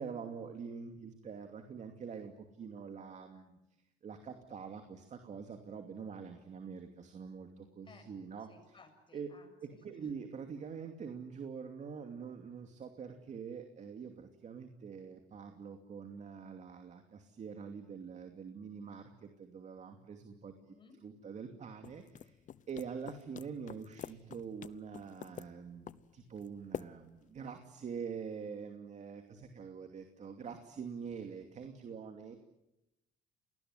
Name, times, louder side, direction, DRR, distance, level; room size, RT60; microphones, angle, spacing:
voice 1, 0.0-3.6 4.0-8.8 9.1-9.3 9.6-20.7 21.0-22.4 22.7-32.4, right 6 dB, 45° right, 6 dB, 2.7 m, -45 dB
voice 2, 8.5-10.1 20.5-21.0, left 4 dB, 30° left, 6 dB, 7.1 m, -60 dB
sound 1, 21.8-27.3, left 9 dB, 50° left, 0.9 m, -48 dB
28.5 x 20.0 x 9.7 m, 0.90 s
cardioid pair, 110°, 17 cm